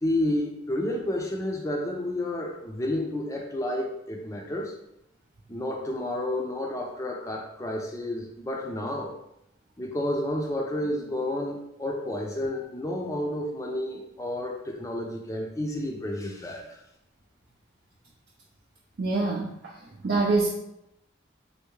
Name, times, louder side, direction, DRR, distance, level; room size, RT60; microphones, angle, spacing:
voice 1, 0.0-4.7 5.5-9.1 9.8-16.8, left 1 dB, 15° left, 0 dB, 0.4 m, -30 dB
voice 2, 19.0-19.7 20.0-20.5, right 3 dB, 60° right, -3 dB, 0.5 m, -25 dB
3.4 x 2.6 x 3.1 m, 0.83 s
head